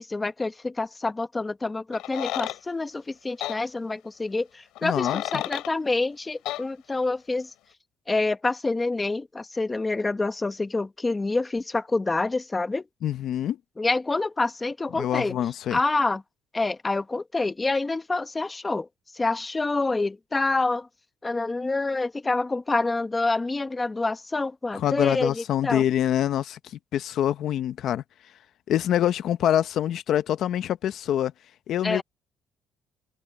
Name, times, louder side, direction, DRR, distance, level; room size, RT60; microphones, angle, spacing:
voice 1, 0.0-7.5 8.1-12.8 13.8-15.4 15.7-16.2 16.5-18.9 19.1-20.9 21.2-25.8 31.8-32.0, left 3 dB, 15° left, 1.3 m, -27 dB
sound 1, 1.9-2.6 3.4-3.6 4.8-5.7 6.5-6.6, left 15 dB, 85° left, 5.2 m, -32 dB
voice 2, 4.8-5.4 13.0-13.6 14.9-15.8 24.7-28.0 28.7-31.3 31.7-32.0, left 11 dB, 55° left, 0.8 m, -25 dB
cardioid pair, 155°, 0 cm